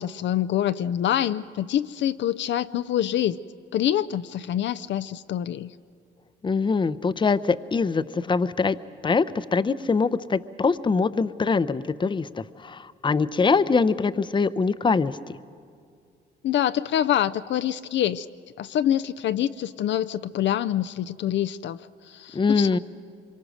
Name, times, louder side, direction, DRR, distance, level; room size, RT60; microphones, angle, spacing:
voice 1, 0.0-3.4 3.7-5.7 16.4-18.3 18.6-22.8, left 11 dB, 65° left, 12 dB, 0.5 m, -26 dB
voice 2, 6.4-8.8 9.0-15.1 22.3-22.8, left 4 dB, 25° left, 14 dB, 0.7 m, -23 dB
25.5 x 23.5 x 6.4 m, 2.2 s
cardioid pair, 90°, 20 cm